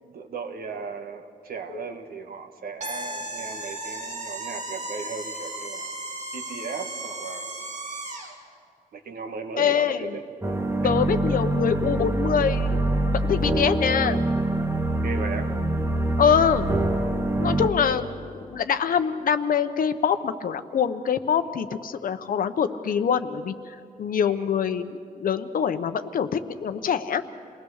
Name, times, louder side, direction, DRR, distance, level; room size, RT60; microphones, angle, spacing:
voice 1, 0.0-6.0 6.3-7.6 8.9-10.2 10.8-10.9 15.0-15.6 17.8-18.0 24.2-24.5, right 5 dB, 75° right, 5 dB, 1.6 m, -37 dB
sound 1, 2.8-8.4, right 2 dB, 50° right, 2.8 m, -35 dB
voice 2, 9.6-10.1 10.8-12.8 13.3-14.2 16.2-16.8 17.4-18.1 18.5-27.2, left 7 dB, 65° left, 10 dB, 0.9 m, -24 dB
sound 2, 10.4-17.7, right 1 dB, 15° right, 1.1 m, -25 dB
28.0 x 19.5 x 6.5 m, 2.3 s
wide cardioid pair, 175°, 15 cm